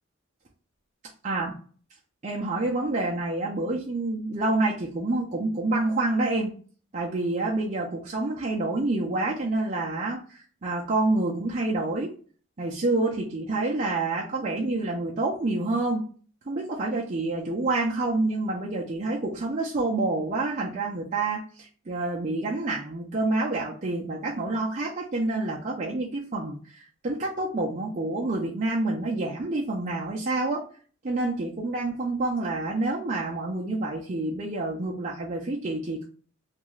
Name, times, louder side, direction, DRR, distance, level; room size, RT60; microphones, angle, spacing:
voice 1, 1.2-1.5 2.2-6.5 6.9-12.1 12.6-16.0 16.5-30.6 31.0-36.1, right 2 dB, 35° right, -4 dB, 0.5 m, -28 dB
2.6 x 2.3 x 3.1 m, 0.41 s
head